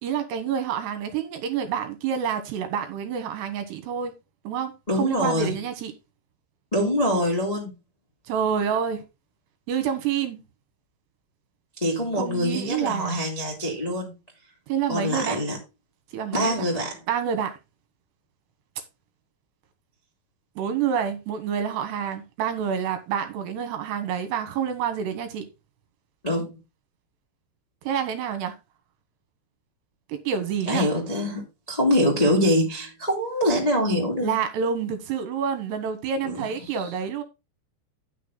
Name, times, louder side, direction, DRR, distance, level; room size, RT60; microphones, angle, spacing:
voice 1, 0.0-4.1 4.4-5.9 8.3-9.0 9.7-10.4 12.2-13.2 14.7-15.4 16.1-16.6 17.1-17.6 20.6-25.5 27.8-28.6 30.1-30.9 34.2-37.2, right 7 dB, 75° right, 2.8 m, -28 dB
voice 2, 4.9-5.5 6.7-7.7 11.8-14.1 14.9-15.6 16.3-17.0 26.2-26.6 30.7-34.3 36.2-36.5, equal, 30° left, 0.7 m, -24 dB
10.0 x 6.3 x 3.8 m
omnidirectional pair, 5.5 m